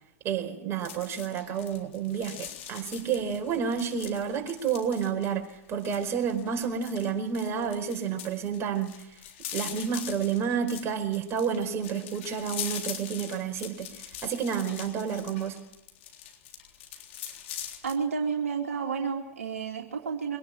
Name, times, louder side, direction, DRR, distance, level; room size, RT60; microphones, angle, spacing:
voice 1, 0.2-8.9 9.5-13.9 14.2-15.6, right 7 dB, 35° right, 4 dB, 4.7 m, -30 dB
sound 1, 0.8-17.9, left 10 dB, 55° left, 3.7 m, -42 dB
voice 2, 17.8-20.4, right 6 dB, 70° right, 1 dB, 2.8 m, -31 dB
24.5 x 18.5 x 9.3 m, 0.85 s
figure-of-eight pair, 90°, 8 cm